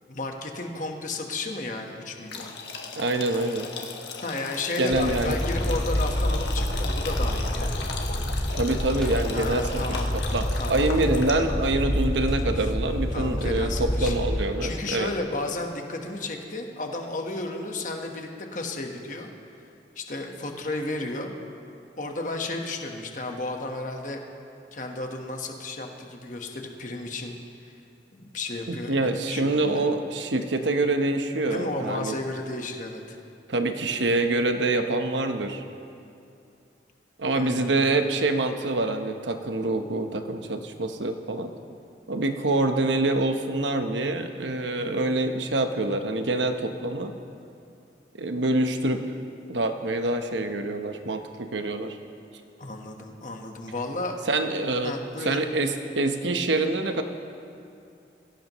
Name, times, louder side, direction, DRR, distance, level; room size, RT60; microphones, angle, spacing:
voice 1, 0.1-2.6 4.2-7.9 9.3-10.1 10.6-10.9 12.6-12.7 13.1-14.1 14.6-19.3 19.9-21.3 22.0-24.2 24.7-27.4 27.7-27.8 28.1-29.9 31.5-33.2 37.3-37.8 52.6-54.2 54.8-55.4, left 2 dB, 45° left, 3 dB, 1.3 m, -33 dB
sound 1, 2.3-11.6, left 4 dB, 70° left, 1.3 m, -37 dB
voice 2, 3.0-3.7 4.8-5.4 8.5-9.7 10.1-15.1 28.7-32.2 33.5-35.6 37.2-41.5 42.1-47.1 48.2-49.2 49.5-52.0 54.3-54.9 55.2-57.0, right 2 dB, 90° right, 6 dB, 1.0 m, -26 dB
sound 2, 4.9-14.3, equal, 5° left, 2.1 m, -28 dB
21.0 x 16.5 x 3.1 m, 2.6 s
head